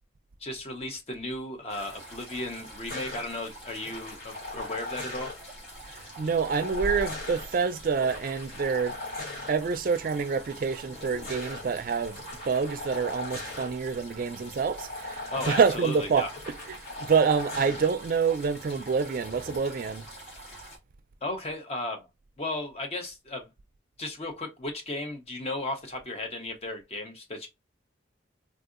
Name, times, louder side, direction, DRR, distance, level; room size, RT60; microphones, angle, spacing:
voice 1, 0.4-5.3 15.3-16.4 21.2-22.1 22.4-23.5 24.0-27.5, left 2 dB, 35° left, 0.6 m, -35 dB
sound 1, 1.7-20.8, equal, 65° left, 1.8 m, -45 dB
sound 2, 2.9-3.2 3.8-5.3 6.4-7.4 8.0-9.5 10.8-11.6 12.1-13.7 14.8-15.8 16.3-17.9 19.2-19.6, left 2 dB, 50° left, 1.2 m, -39 dB
voice 2, 6.2-8.9 9.5-12.2 12.5-16.2 17.1-20.1, right 5 dB, 50° right, 0.3 m, -27 dB
3.5 x 2.6 x 2.4 m
head